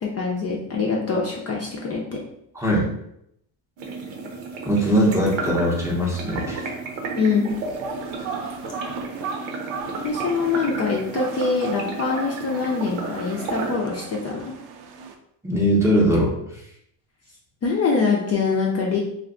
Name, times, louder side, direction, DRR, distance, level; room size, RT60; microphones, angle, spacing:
voice 1, 0.0-2.2 7.1-7.5 10.0-14.5 17.6-19.0, left 4 dB, 35° left, -2 dB, 0.5 m, -24 dB
voice 2, 2.5-2.9 4.6-6.7 15.4-16.3, equal, 5° right, -4 dB, 0.7 m, -20 dB
sound 1, 3.8-13.7, right 3 dB, 80° right, 0.9 m, -33 dB
sound 2, 7.5-15.1, right 6 dB, 55° right, 0.6 m, -37 dB
2.5 x 2.2 x 3.7 m, 0.75 s
cardioid pair, 110°, 48 cm